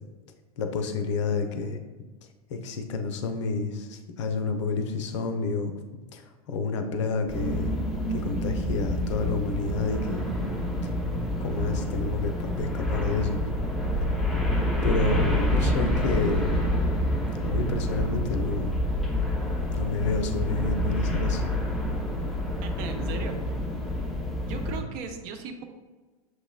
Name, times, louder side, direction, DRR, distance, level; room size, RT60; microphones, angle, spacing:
voice 1, 0.6-1.8 2.5-5.7 6.1-7.7 8.1-10.2 11.4-13.4 14.8-16.4 17.4-18.7 19.7-21.4, left 4 dB, 50° left, 7 dB, 0.5 m, -29 dB
sound 1, 7.3-24.8, equal, ahead, 0.7 m, -27 dB
voice 2, 22.6-23.5 24.4-25.6, right 5 dB, 35° right, 6 dB, 0.5 m, -38 dB
6.3 x 3.0 x 2.3 m, 1.3 s
figure-of-eight pair, 90°, 19 cm